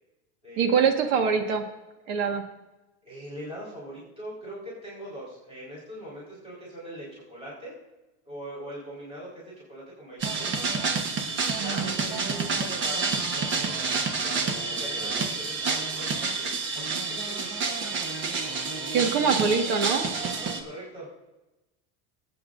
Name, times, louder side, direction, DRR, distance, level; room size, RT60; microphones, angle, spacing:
voice 1, 0.6-1.6 2.1-2.4 11.6-12.3 18.9-20.1, right 6 dB, 65° right, 5 dB, 1.6 m, -24 dB
voice 2, 3.0-7.7 8.2-10.5 11.2-18.1 20.6-21.1, equal, 15° right, -7 dB, 4.5 m, -42 dB
sound 1, 10.2-20.6, right 4 dB, 35° right, 1.2 m, -29 dB
20.0 x 8.7 x 2.6 m, 1.0 s
cardioid pair, 150°, 35 cm